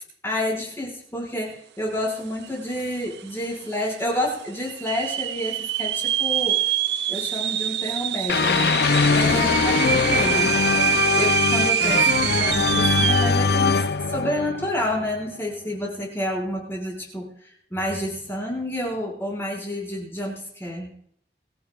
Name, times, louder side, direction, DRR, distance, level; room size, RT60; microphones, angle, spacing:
voice 1, 0.2-6.6 7.1-8.8 9.1-10.5 11.1-20.9, left 1 dB, 15° left, -2 dB, 5.5 m, -29 dB
sound 1, 2.5-2.6 2.8-3.3 3.8-3.9 4.7-13.4, right 10 dB, 70° right, 0.4 m, -25 dB
sound 2, 8.3-15.3, left 5 dB, 65° left, 0.5 m, -22 dB
24.5 x 14.5 x 2.4 m, 0.68 s
head